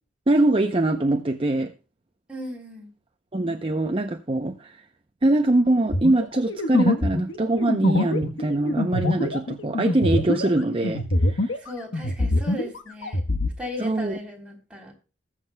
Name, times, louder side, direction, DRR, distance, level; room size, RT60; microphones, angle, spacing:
voice 1, 0.3-1.7 3.3-4.8 5.2-11.5 13.8-14.2, right 2 dB, 30° right, 0.6 m, -23 dB
voice 2, 2.3-2.9 11.6-13.2 13.6-14.9, left 1 dB, 5° right, 3.4 m, -36 dB
sound 1, 5.9-11.7 11.9-13.5, left 1 dB, 85° left, 1.2 m, -24 dB
20.0 x 7.4 x 2.2 m
head